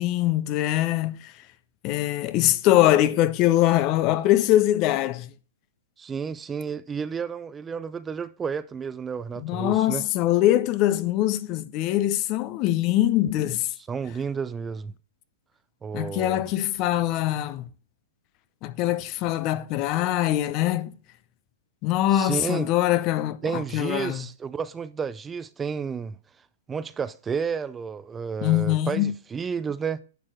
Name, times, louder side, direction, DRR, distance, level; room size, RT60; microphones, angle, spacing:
voice 1, 0.0-1.3 1.8-5.3 9.4-13.7 15.9-17.7 18.6-20.9 21.8-24.3 28.4-29.1, left 14 dB, 40° left, 0.6 m, -23 dB
voice 2, 6.0-10.1 13.9-14.9 15.8-16.5 22.1-22.7 23.4-26.2 26.7-30.0, right 6 dB, 15° right, 0.5 m, -31 dB
10.5 x 6.3 x 3.7 m
hypercardioid pair, 120°, 0 cm